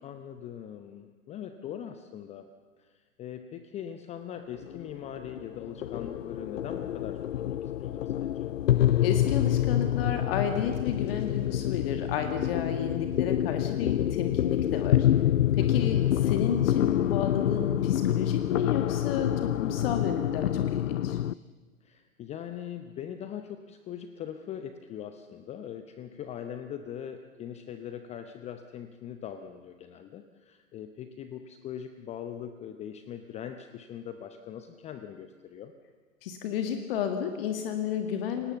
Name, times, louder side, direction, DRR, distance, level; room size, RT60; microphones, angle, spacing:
voice 1, 0.0-2.5 2.8-8.6 15.6-16.1 21.8-35.7, left 9 dB, 15° left, 9 dB, 0.7 m, -41 dB
sound 1, 4.5-21.3, left 11 dB, 65° left, 0.6 m, -27 dB
voice 2, 9.0-15.1 15.6-21.2 36.2-38.5, left 8 dB, 45° left, 6 dB, 1.8 m, -32 dB
28.5 x 18.0 x 7.0 m, 1.5 s
figure-of-eight pair, 110°, 41 cm